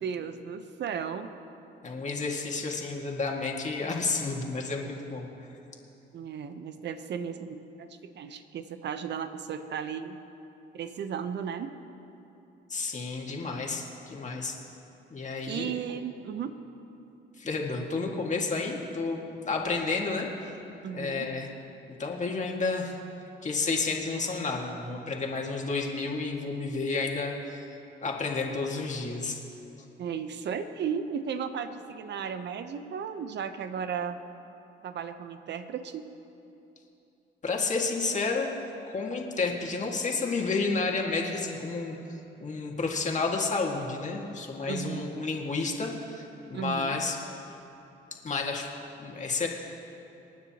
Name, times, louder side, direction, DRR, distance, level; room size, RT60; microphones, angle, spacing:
voice 1, 0.0-1.4 2.3-2.4 6.1-10.2 10.7-11.8 15.5-16.6 20.8-21.4 30.0-34.2 34.8-36.1 44.7-45.1 46.5-47.0, right 7 dB, 60° right, 9 dB, 0.9 m, -35 dB
voice 2, 1.8-5.5 12.7-14.6 15.1-15.8 17.4-20.3 20.9-21.5 22.0-23.0 23.4-27.6 28.0-29.4 37.4-38.5 38.8-47.2 48.2-48.7 49.0-49.5, left 3 dB, 35° left, 0 dB, 1.9 m, -31 dB
27.5 x 9.5 x 3.0 m, 2.9 s
cardioid pair, 90°, 20 cm